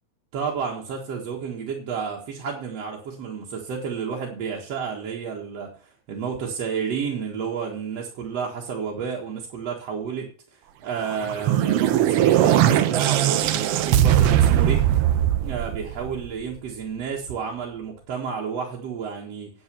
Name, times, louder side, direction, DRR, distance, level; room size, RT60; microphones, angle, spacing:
voice 1, 0.3-14.8 15.4-19.5, right 6 dB, 55° right, -1 dB, 2.7 m, -31 dB
sound 1, 11.1-16.4, right 11 dB, 80° right, 1.3 m, -20 dB
9.4 x 8.8 x 6.8 m, 0.43 s
omnidirectional pair, 3.5 m